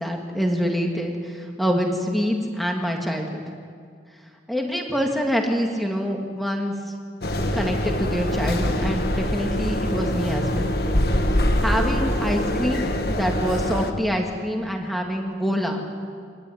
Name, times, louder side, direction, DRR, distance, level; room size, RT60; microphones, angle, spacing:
voice 1, 0.0-3.4 4.5-6.7 7.5-10.7 11.6-15.8, equal, ahead, 1 dB, 2.7 m, -25 dB
sound 1, 7.2-13.9, left 1 dB, 55° left, 1.7 m, -24 dB
26.0 x 18.5 x 9.7 m, 2.1 s
head